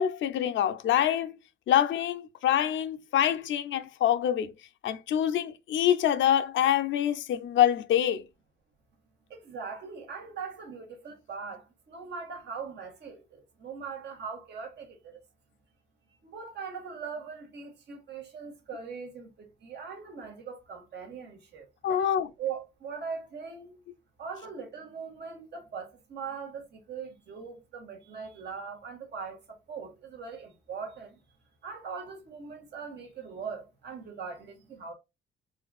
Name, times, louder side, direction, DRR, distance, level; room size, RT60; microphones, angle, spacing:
voice 1, 0.0-1.3 1.7-4.5 4.8-8.2 21.8-22.3, left 10 dB, 70° left, 0.6 m, -25 dB
voice 2, 9.3-15.2 16.2-23.8 24.2-31.2 31.6-34.9, right 5 dB, 60° right, 1.8 m, -41 dB
4.5 x 3.8 x 2.3 m
cardioid pair, 90°, 20 cm